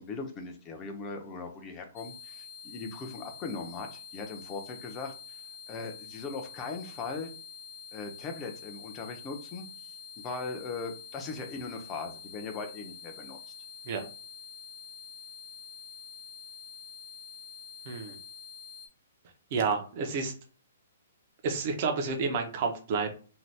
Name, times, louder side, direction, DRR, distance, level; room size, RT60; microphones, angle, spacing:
voice 1, 0.0-5.4 5.7-7.3 7.9-13.4, left 4 dB, 20° left, 5 dB, 0.5 m, -39 dB
sound 1, 2.0-18.9, left 6 dB, 80° left, 0.8 m, -47 dB
voice 2, 17.9-18.2 19.5-20.3 21.4-23.1, right 4 dB, 35° right, 4 dB, 0.6 m, -30 dB
2.7 x 2.2 x 3.2 m, 0.39 s
hypercardioid pair, 165°, 0 cm